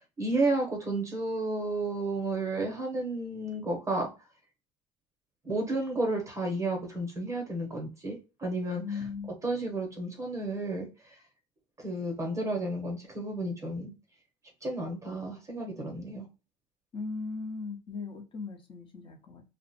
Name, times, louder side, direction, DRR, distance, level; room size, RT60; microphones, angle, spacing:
voice 1, 0.2-4.1 5.4-8.8 9.4-11.2 11.8-13.9 14.6-16.3, right 2 dB, 20° right, 0.8 m, -32 dB
voice 2, 8.8-9.3 16.9-19.4, left 4 dB, 35° left, 0.7 m, -38 dB
2.4 x 2.1 x 2.7 m
supercardioid pair, 100°, 15 cm